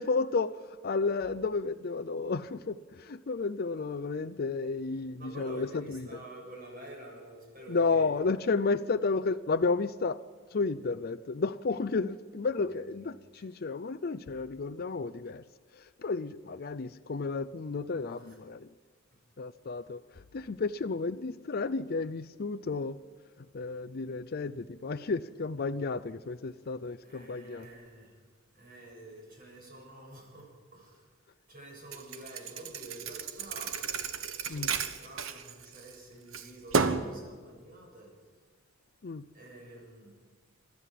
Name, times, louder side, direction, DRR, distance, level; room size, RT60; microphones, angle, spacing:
voice 1, 0.0-6.1 7.7-10.2 10.5-15.4 15.8-18.7 19.4-20.0 20.3-23.0 23.5-27.7 34.5-34.7 39.0-39.2, left 4 dB, 50° left, 11 dB, 0.5 m, -32 dB
voice 2, 5.2-8.1 12.6-13.4 18.1-18.4 19.1-19.2 27.0-28.3 28.5-31.1 31.5-33.7 34.5-38.3 39.3-40.2, right 1 dB, 45° right, 0 dB, 7.0 m, -49 dB
Thump thud, 31.9-35.9 36.3-37.1, right 5 dB, 85° right, 1.2 m, -32 dB
28.0 x 13.0 x 7.6 m, 1.5 s
head